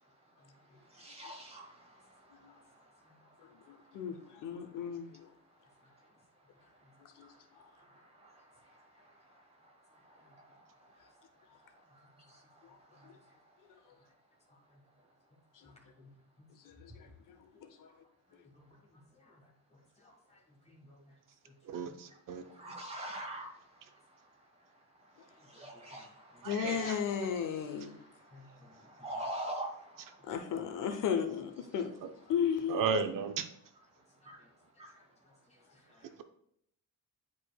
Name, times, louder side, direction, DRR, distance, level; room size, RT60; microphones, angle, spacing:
voice 1, 0.9-1.8 8.2-8.3 12.3-12.4 22.5-23.5 25.5-26.5 27.8-28.1 28.7-30.1 34.2-34.4 34.8-34.9, right 1 dB, 15° right, 0 dB, 1.3 m, -42 dB
voice 2, 4.4-5.2 7.2-7.3 16.8-16.9 17.8-17.9 26.5-28.0 30.3-31.9 32.3-32.9, left 7 dB, 60° left, 6 dB, 0.7 m, -33 dB
voice 3, 18.5-19.5 20.0-20.4 20.7-21.0 21.4-22.0 22.3-22.4 22.6-22.7 25.5-25.7 26.3-26.4 28.3-28.8 34.9-35.0 35.5-36.2, left 2 dB, 20° left, 0 dB, 1.5 m, -61 dB
voice 4, 21.7-22.4 26.4-27.0 32.7-33.5, right 5 dB, 65° right, 9 dB, 0.6 m, -34 dB
10.0 x 4.8 x 2.3 m, 0.73 s
cardioid pair, 170°, 35 cm